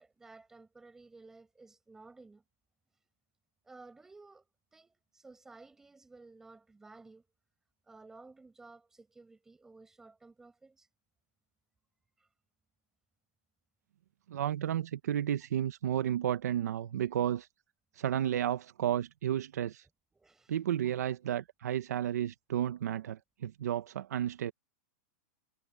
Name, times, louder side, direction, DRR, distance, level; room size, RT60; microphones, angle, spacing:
voice 1, 0.0-2.4 3.6-4.4 4.7-7.3 7.9-10.9 12.2-12.3 20.1-20.5, right 3 dB, 5° right, 5.6 m, -55 dB
voice 2, 14.3-17.5 17.9-19.9 20.5-24.5, right 10 dB, 85° right, 1.1 m, -32 dB
supercardioid pair, 175°, 9 cm